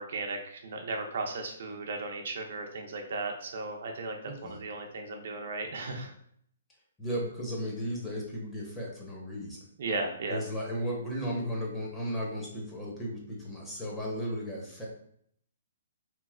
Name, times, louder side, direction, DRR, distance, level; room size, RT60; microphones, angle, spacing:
voice 1, 0.0-4.2 4.4-6.1 9.8-10.4, right 3 dB, 60° right, 3 dB, 0.5 m, -35 dB
voice 2, 4.2-4.6 7.0-9.6 10.3-14.9, equal, 10° left, -3 dB, 0.8 m, -35 dB
3.1 x 2.7 x 2.4 m, 0.66 s
hypercardioid pair, 155°, 0 cm